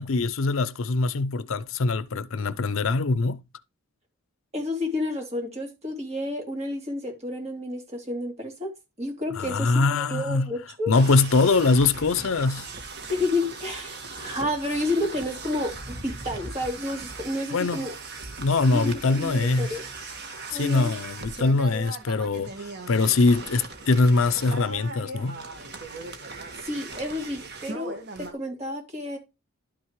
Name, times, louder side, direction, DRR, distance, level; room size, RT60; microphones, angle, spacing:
voice 1, 0.0-3.4 9.3-10.5 10.9-12.7 17.5-17.8 18.4-19.8 20.5-25.4, left 3 dB, 60° left, 0.5 m, -23 dB
voice 2, 4.5-10.9 13.1-17.9 18.6-19.8 20.5-20.9 26.6-29.2, left 1 dB, 30° right, 2.9 m, -30 dB
sound 1, 10.9-28.3, right 3 dB, 45° right, 1.6 m, -39 dB
11.5 x 6.0 x 3.1 m
head